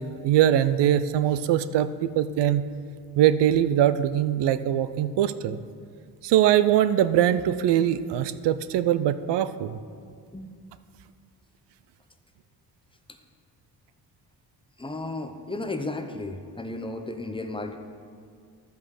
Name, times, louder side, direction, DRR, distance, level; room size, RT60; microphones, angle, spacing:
voice 1, 0.2-2.6 3.2-5.6 6.2-9.8, right 11 dB, 85° right, 13 dB, 0.5 m, -22 dB
voice 2, 14.8-17.8, left 2 dB, 10° left, 6 dB, 0.8 m, -34 dB
11.5 x 5.5 x 6.5 m, 2.1 s
cardioid pair, 95°, 41 cm